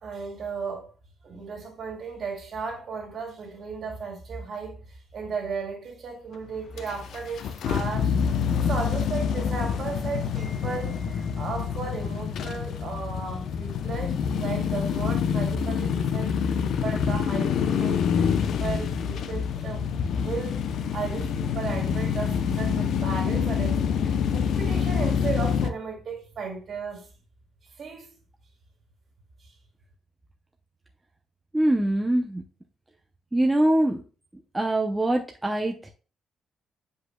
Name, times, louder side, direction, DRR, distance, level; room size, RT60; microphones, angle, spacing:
voice 1, 0.0-0.9 1.2-4.8 5.1-8.2 8.5-16.4 16.8-19.8 20.2-27.1 27.8-28.1, right 4 dB, 50° right, 2.4 m, -35 dB
sound 1, 6.7-25.7, left 7 dB, 65° left, 0.6 m, -26 dB
voice 2, 31.5-32.4 33.3-34.0 34.5-35.9, right 1 dB, 10° right, 0.6 m, -23 dB
8.1 x 5.2 x 2.2 m
cardioid pair, 150°, 0 cm